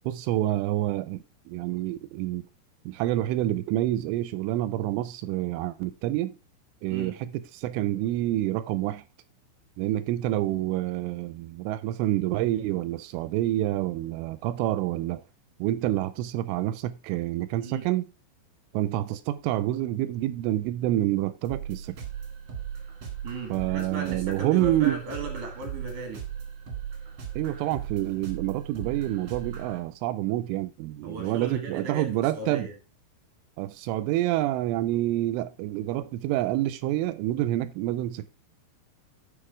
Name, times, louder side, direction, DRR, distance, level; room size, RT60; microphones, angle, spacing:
voice 1, 0.1-2.5 2.9-6.4 6.8-9.0 9.8-15.2 15.6-18.0 18.7-22.0 23.5-25.0 27.4-32.7 33.6-38.3, right 14 dB, 85° right, 2.9 m, -28 dB
sound 1, 21.4-29.8, right 8 dB, 50° right, 1.7 m, -37 dB
voice 2, 23.2-26.2 31.0-32.7, right 3 dB, 65° right, 2.0 m, -37 dB
9.9 x 5.4 x 4.7 m
omnidirectional pair, 5.8 m